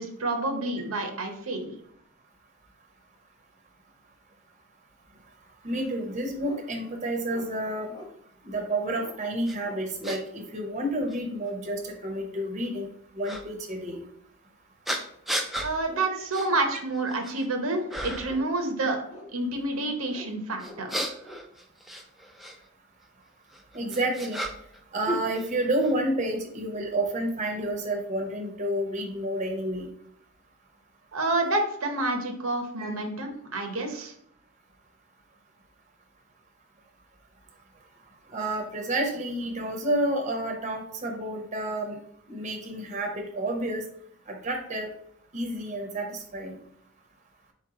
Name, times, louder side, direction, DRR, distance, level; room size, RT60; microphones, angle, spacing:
voice 1, 0.0-1.7 15.6-19.0 19.3-21.1 31.1-34.1, right 2 dB, 90° right, 4 dB, 0.8 m, -29 dB
voice 2, 5.6-7.9 8.5-12.9 13.1-14.0 23.7-24.4 24.9-29.9 32.8-32.9 38.3-42.0 42.3-43.8 44.3-44.9 45.3-46.6, right 1 dB, 35° right, 2 dB, 0.7 m, -30 dB
sound 1, 6.4-6.6 7.3-7.5 7.9-8.1 8.9-9.2 9.6-9.9 11.9-12.1 15.0-15.1 15.9-16.1 16.4-16.5 16.9-17.3 17.8-18.6 19.1-19.6 20.1-20.3 20.6-21.4, left 1 dB, 20° left, 0.8 m, -46 dB
sound 2, 9.5-9.6 10.0-10.2 11.1-11.2 13.2-13.4 14.8-15.7 16.3-16.5 16.9-17.4 17.9-18.4 20.6-22.6 23.5-24.8 25.0-25.9, equal, ahead, 0.4 m, -33 dB
4.4 x 3.0 x 3.6 m, 0.68 s
head